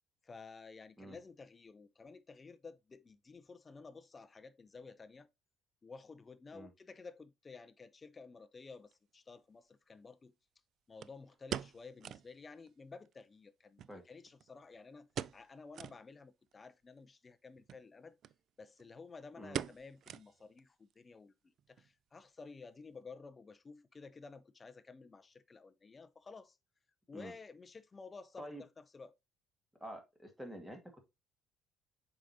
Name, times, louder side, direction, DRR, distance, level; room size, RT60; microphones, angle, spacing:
voice 1, 0.2-5.3 5.8-10.3 10.9-18.2 18.6-21.3 21.7-26.6 27.1-29.1, left 4 dB, 20° left, 0.6 m, -53 dB
sound 1, 8.9-9.0 11.0-12.4 12.7-12.8 13.1-13.2 13.8-14.7 15.1-15.5 15.7-16.0 16.5-16.6 17.6-17.8 18.2-18.4 18.6-19.0 19.5-20.6 20.9-21.0 21.6-21.9 22.2-22.3, right 9 dB, 50° right, 0.3 m, -43 dB
voice 2, 29.8-30.8, right 1 dB, 5° right, 1.8 m, -47 dB
7.5 x 4.9 x 2.7 m
cardioid pair, 150°, 0 cm